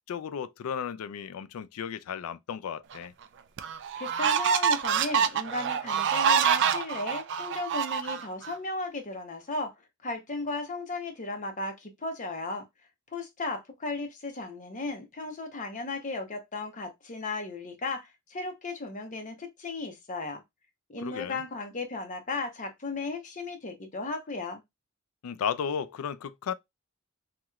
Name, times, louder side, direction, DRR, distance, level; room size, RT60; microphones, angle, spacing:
voice 1, 0.1-3.1 21.0-21.4 25.2-26.5, left 7 dB, 85° left, 0.4 m, -34 dB
sound 1, 2.9-3.0 3.6-8.5, right 7 dB, 55° right, 0.3 m, -26 dB
voice 2, 4.0-9.7 10.0-12.6 13.1-20.4 20.9-24.6, left 3 dB, 35° left, 0.8 m, -35 dB
3.0 x 2.8 x 2.3 m
head